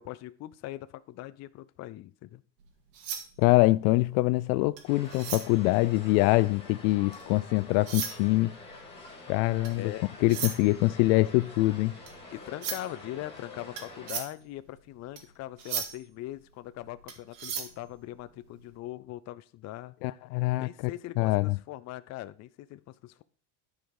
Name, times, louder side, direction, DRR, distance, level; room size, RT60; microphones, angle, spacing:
voice 1, 0.0-2.4 9.8-10.1 12.3-19.9 20.5-23.2, left 15 dB, 35° left, 0.5 m, -41 dB
sound 1, 2.6-7.4 7.7-18.7, right 7 dB, 80° right, 1.9 m, -39 dB
voice 2, 3.4-8.6 9.3-9.9 10.2-12.0 20.0-20.9 21.2-21.6, left 20 dB, 85° left, 0.6 m, -24 dB
sound 2, 4.8-14.2, left 3 dB, 10° left, 2.8 m, -48 dB
10.0 x 5.2 x 4.7 m
cardioid pair, 140°, 45 cm